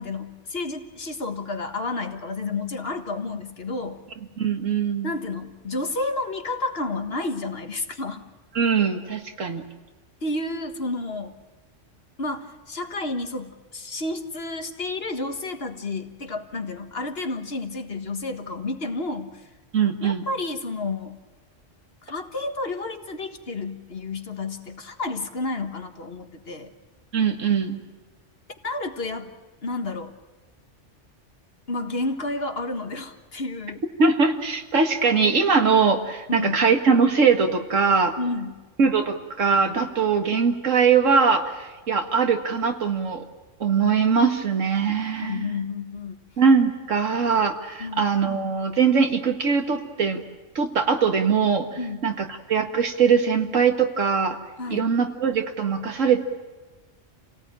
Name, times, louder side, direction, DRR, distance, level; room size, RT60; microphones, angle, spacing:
voice 1, 0.0-4.0 5.0-8.2 10.2-11.3 12.2-19.3 20.0-21.2 22.1-26.7 28.6-29.3 29.6-30.1 31.7-33.8 36.3-36.6 38.2-38.6 45.2-46.1 47.8-48.0 51.8-52.0 54.6-54.9, left 2 dB, 55° left, 6 dB, 1.7 m, -30 dB
voice 2, 4.4-5.1 8.6-9.6 19.7-20.3 27.1-27.8 34.0-38.1 38.8-43.2 43.6-45.5 46.4-50.2 50.6-51.7 52.0-54.4 54.7-56.2, right 5 dB, 90° right, 5 dB, 2.1 m, -21 dB
28.5 x 18.0 x 8.9 m, 1.2 s
omnidirectional pair, 1.3 m